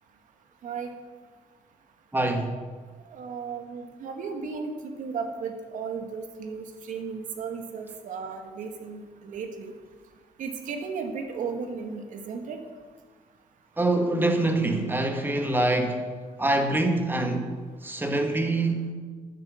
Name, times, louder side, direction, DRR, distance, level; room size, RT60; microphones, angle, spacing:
voice 1, 2.1-2.5 13.8-16.1 16.4-17.5 17.8-18.9, right 2 dB, 15° right, 1.5 m, -25 dB
voice 2, 3.1-4.7 5.0-9.7 10.4-12.6, right 5 dB, 75° right, 1.6 m, -35 dB
12.0 x 10.0 x 6.3 m
cardioid pair, 110°, 13 cm